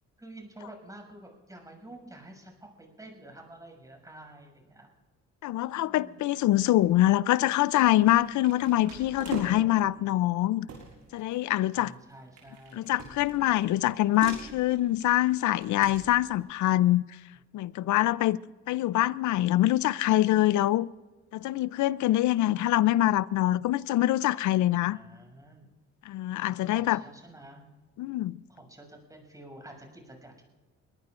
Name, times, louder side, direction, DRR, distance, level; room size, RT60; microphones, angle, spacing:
voice 1, 0.2-4.9 5.7-6.2 10.0-10.3 11.7-12.9 24.9-25.7 26.7-27.6 28.5-30.4, right 1 dB, 10° right, 6.6 m, -49 dB
voice 2, 5.4-10.7 11.1-11.9 12.7-17.0 17.5-18.4 18.7-20.9 21.3-25.0 26.1-27.0 28.0-28.4, left 14 dB, 75° left, 0.5 m, -24 dB
sound 1, 6.8-7.2 7.9-9.8 10.3-10.4 10.7-16.4, right 5 dB, 75° right, 6.3 m, -44 dB
22.5 x 19.5 x 2.5 m
cardioid pair, 90°, 30 cm